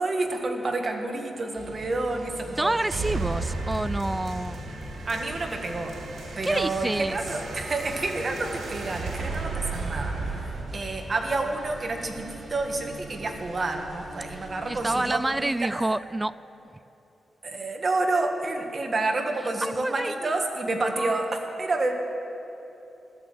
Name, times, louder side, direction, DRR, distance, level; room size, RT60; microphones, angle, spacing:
voice 1, 0.0-2.8 5.0-6.0 6.4-15.8 17.4-21.9, right 2 dB, 40° right, 3 dB, 1.7 m, -29 dB
sound 1, 1.5-15.1, right 1 dB, 55° right, 2.9 m, -43 dB
voice 2, 2.6-4.6 6.4-7.2 14.7-16.4 16.7-16.8 19.6-20.4 21.0-21.3, right 2 dB, 15° right, 17 dB, 0.3 m, -28 dB
sound 2, 2.9-11.9, right 3 dB, 80° right, 3.6 m, -34 dB
13.5 x 13.5 x 7.6 m, 3.0 s
wide cardioid pair, 110°, 0 cm